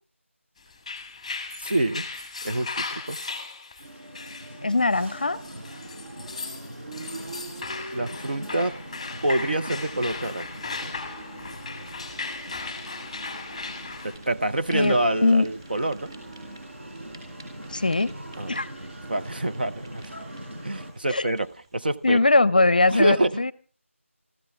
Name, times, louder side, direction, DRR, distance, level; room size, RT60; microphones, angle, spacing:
sound 1, 0.7-14.2, left 4 dB, 5° left, 1.5 m, -37 dB
voice 1, 1.6-2.1 2.4-3.2 7.9-8.8 9.2-10.5 10.8-11.0 14.0-16.2 18.4-20.1 20.6-22.2 22.9-23.5, right 1 dB, 40° right, 9 dB, 0.8 m, -27 dB
sound 2, 3.8-20.9, right 1 dB, 55° right, 5.1 m, -41 dB
voice 2, 4.6-5.4 14.7-15.5 17.7-18.1 18.5-18.7 21.1-21.3 22.0-23.5, left 2 dB, 35° left, 20 dB, 0.7 m, -21 dB
Fire, 9.1-22.4, right 2 dB, 20° right, 4.0 m, -53 dB
25.5 x 14.5 x 3.6 m, 0.36 s
figure-of-eight pair, 170°, 7 cm